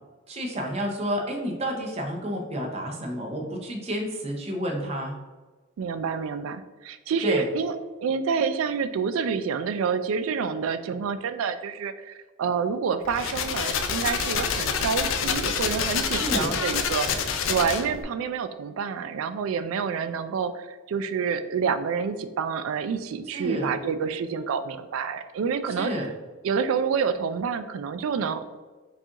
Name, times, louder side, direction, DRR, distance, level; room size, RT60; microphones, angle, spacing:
voice 1, 0.3-5.2 7.2-7.5 16.2-16.5 23.3-23.7 25.7-26.1, equal, 30° right, 0 dB, 0.6 m, -30 dB
voice 2, 5.8-7.7 8.0-26.1 26.4-28.6, right 6 dB, 85° right, 11 dB, 0.3 m, -28 dB
sound 1, 13.0-18.0, left 6 dB, 75° left, 0.4 m, -27 dB
4.7 x 2.4 x 2.8 m, 1.3 s
head